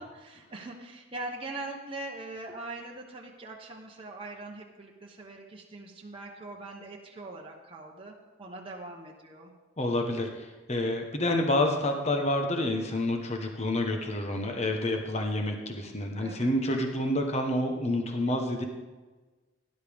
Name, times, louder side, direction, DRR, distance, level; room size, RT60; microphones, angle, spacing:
voice 1, 0.0-9.5 16.1-16.5, right 2 dB, 25° right, -1 dB, 1.0 m, -42 dB
voice 2, 9.8-18.6, left 1 dB, 30° left, 3 dB, 1.2 m, -28 dB
18.0 x 10.5 x 3.6 m, 1.3 s
head